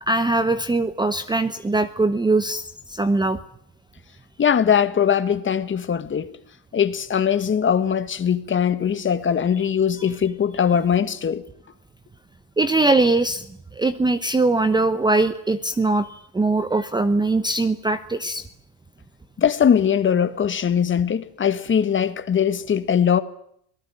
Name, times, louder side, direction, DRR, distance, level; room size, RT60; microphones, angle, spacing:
voice 1, 0.1-3.4 12.6-13.4 13.8-18.4, right 2 dB, 10° right, 0.9 m, -21 dB
voice 2, 4.4-6.3 6.7-11.4 19.4-23.2, left 8 dB, 25° left, 1.7 m, -21 dB
26.0 x 18.5 x 9.0 m
cardioid pair, 135°, 46 cm